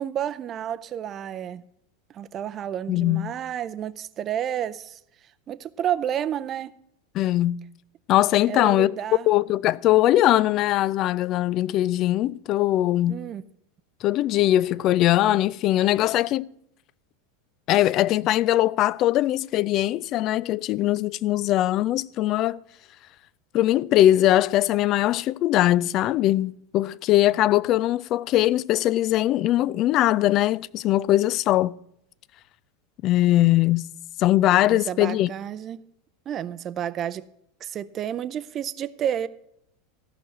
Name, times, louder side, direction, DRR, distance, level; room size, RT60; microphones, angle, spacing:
voice 1, 0.0-1.6 2.1-5.0 5.5-6.7 8.5-9.3 13.1-13.4 34.7-35.8 36.3-37.2 37.6-39.3, right 10 dB, 35° right, 0.6 m, -30 dB
voice 2, 2.9-3.3 7.1-7.6 8.1-8.9 9.3-13.2 14.0-16.4 17.7-22.6 23.5-31.7 33.0-33.9 34.2-35.3, left 14 dB, 45° left, 0.3 m, -21 dB
14.0 x 6.1 x 7.8 m
figure-of-eight pair, 85°, 0 cm